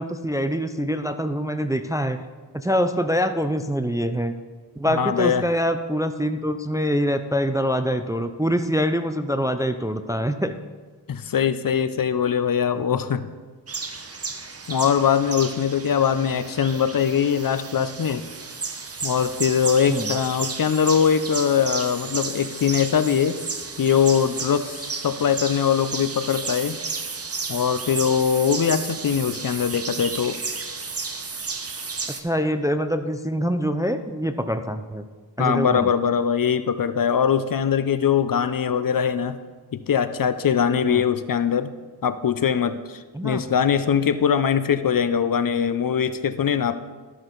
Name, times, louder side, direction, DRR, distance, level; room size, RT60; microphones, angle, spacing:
voice 1, 0.0-2.2 2.5-4.3 4.8-10.5 12.7-12.8 19.9-20.2 32.2-35.1 35.4-35.9 40.8-41.0 43.1-43.4, equal, 10° right, 9 dB, 0.4 m, -24 dB
voice 2, 4.9-5.4 11.1-13.2 14.7-18.2 19.0-23.4 23.8-26.8 27.5-30.4 35.4-39.4 39.7-41.7 42.0-46.8, left 7 dB, 50° left, 12 dB, 0.5 m, -22 dB
sound 1, 13.7-32.2, right 4 dB, 35° right, 0.8 m, -33 dB
12.5 x 6.2 x 3.9 m, 1.4 s
wide cardioid pair, 80°, 43 cm